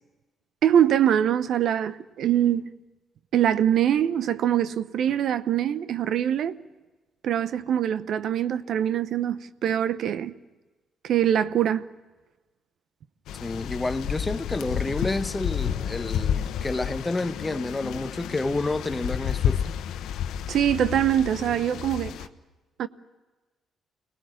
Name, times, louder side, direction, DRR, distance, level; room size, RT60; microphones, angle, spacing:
voice 1, 0.6-2.7 3.3-6.5 7.2-10.3 11.0-11.9 20.5-22.1 22.8-22.9, right 10 dB, 70° right, 0.8 m, -23 dB
sound 1, 13.3-22.3, left 9 dB, 85° left, 1.0 m, -30 dB
voice 2, 13.4-19.7, left 2 dB, 20° left, 0.9 m, -29 dB
25.0 x 19.5 x 9.1 m
cardioid pair, 90°, 0 cm